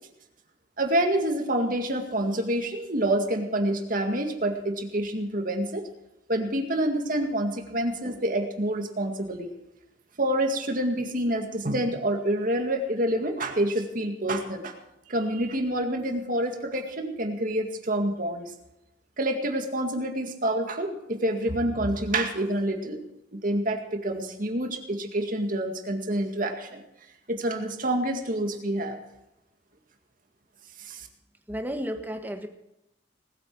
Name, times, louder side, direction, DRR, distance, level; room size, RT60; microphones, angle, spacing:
voice 1, 0.8-5.9 6.3-9.5 10.2-14.8 15.1-18.5 19.2-23.0 23.3-26.8 27.3-29.0 30.8-31.1, right 1 dB, 45° right, 4 dB, 2.1 m, -27 dB
voice 2, 31.5-32.5, equal, 10° right, 5 dB, 1.4 m, -32 dB
19.5 x 9.1 x 6.2 m, 0.88 s
head